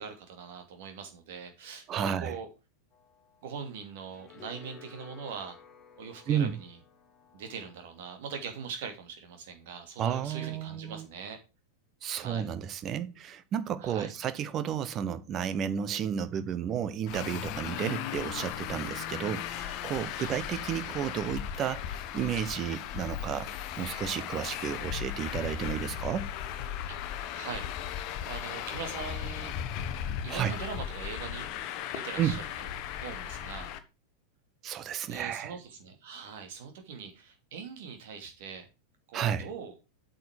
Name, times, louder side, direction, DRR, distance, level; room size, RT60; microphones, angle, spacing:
voice 1, 0.0-2.5 3.4-5.6 6.0-6.8 7.3-11.4 12.1-12.5 13.8-14.1 20.2-20.4 26.9-29.6 30.2-31.5 31.9-33.7 35.0-38.7 39.1-39.8, right 6 dB, 50° right, 2.6 m, -42 dB
voice 2, 1.9-2.4 6.3-6.5 10.0-11.1 12.0-23.5 23.8-26.3 30.3-30.5 32.2-32.4 34.6-35.5 39.1-39.5, right 9 dB, 30° right, 0.9 m, -32 dB
sound 1, 2.9-8.5, left 5 dB, 25° left, 1.8 m, -55 dB
Traffic noise roadway noise, 17.1-33.8, left 10 dB, 40° left, 1.0 m, -37 dB
8.2 x 6.6 x 4.8 m
figure-of-eight pair, 90°, 0 cm